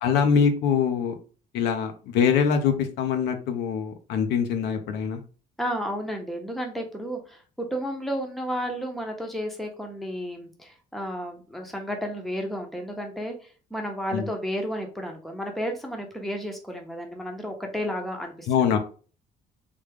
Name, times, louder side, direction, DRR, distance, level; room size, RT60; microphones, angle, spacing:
voice 1, 0.0-1.1 1.5-5.2 14.1-14.3 18.5-18.8, left 7 dB, 80° left, 6 dB, 0.7 m, -23 dB
voice 2, 5.6-13.3 13.7-18.5, equal, ahead, 2 dB, 0.8 m, -32 dB
3.4 x 2.3 x 3.4 m, 0.37 s
cardioid pair, 110°, 17 cm